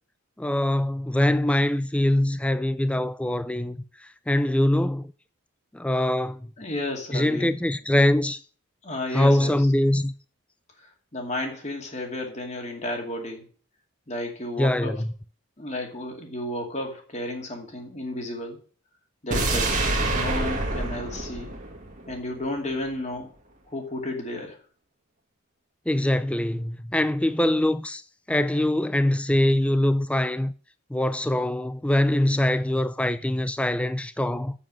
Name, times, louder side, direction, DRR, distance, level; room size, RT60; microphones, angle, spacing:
voice 1, 0.4-3.8 4.3-5.0 5.7-6.4 7.1-8.4 9.1-10.1 14.6-15.1 25.9-28.0 28.3-30.5 30.9-34.5, left 1 dB, 5° left, 0.4 m, -23 dB
voice 2, 6.6-7.6 8.8-9.7 10.8-13.4 14.1-15.0 15.6-18.6 19.2-19.8 20.1-21.5 22.1-23.3 23.7-24.6, left 1 dB, 30° left, 2.4 m, -33 dB
sound 1, 19.3-22.4 22.8-22.9, right 2 dB, 35° right, 1.8 m, -27 dB
7.5 x 7.1 x 7.4 m
head